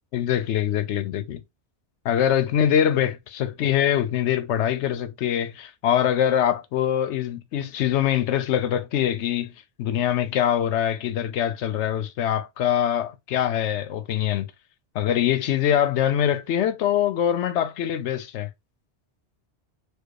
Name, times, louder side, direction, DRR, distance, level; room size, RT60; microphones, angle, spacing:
voice 1, 0.1-1.4 2.0-9.5 9.8-14.5 14.9-18.5, left 10 dB, 80° left, 0.9 m, -23 dB
4.5 x 2.3 x 4.7 m
omnidirectional pair, 1.2 m